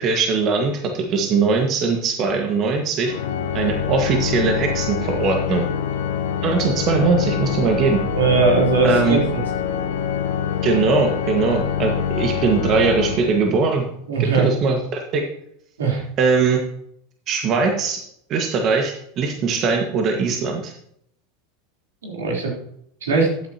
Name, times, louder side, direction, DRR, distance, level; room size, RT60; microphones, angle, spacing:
voice 1, 0.0-3.1 3.5-5.7 6.4-8.0 8.8-9.2 10.6-13.8 14.2-15.2 16.2-16.6 17.3-18.0 18.3-20.7, right 4 dB, 45° right, 3 dB, 1.7 m, -20 dB
Organ, 3.0-13.8, left 7 dB, 80° left, 1.0 m, -25 dB
voice 2, 8.1-9.2 14.1-14.5 15.8-16.0 22.0-22.5 23.0-23.3, right 4 dB, 85° right, -2 dB, 3.7 m, -19 dB
13.5 x 9.3 x 3.0 m, 0.71 s
hypercardioid pair, 95°, 0 cm